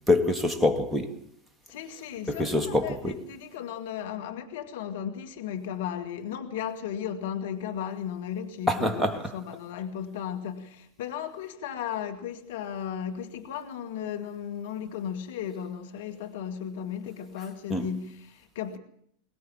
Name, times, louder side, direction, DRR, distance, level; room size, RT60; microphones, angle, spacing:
voice 1, 0.1-1.2 2.3-3.2 8.7-9.3 17.7-17.9, left 2 dB, 5° right, 2.3 m, -25 dB
voice 2, 1.7-18.8, left 9 dB, 65° left, 2.2 m, -35 dB
23.0 x 19.0 x 7.5 m
hypercardioid pair, 90°, 0 cm